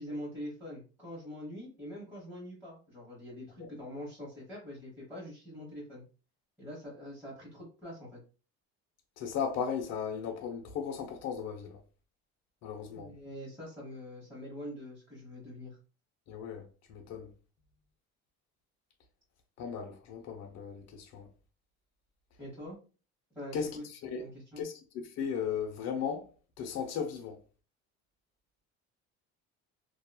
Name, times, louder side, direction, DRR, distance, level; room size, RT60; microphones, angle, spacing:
voice 1, 0.0-6.0 6.6-8.2 12.9-15.8 22.4-22.8 23.3-23.8 24.2-24.7, equal, 5° right, 1.2 m, -44 dB
voice 2, 9.2-11.8 12.6-13.1 16.3-16.6 16.9-17.3 19.6-21.3 23.5-24.2 24.6-24.7 25.2-26.3 26.6-27.4, left 7 dB, 60° left, 0.7 m, -36 dB
2.8 x 2.3 x 2.3 m
cardioid pair, 125°, 30 cm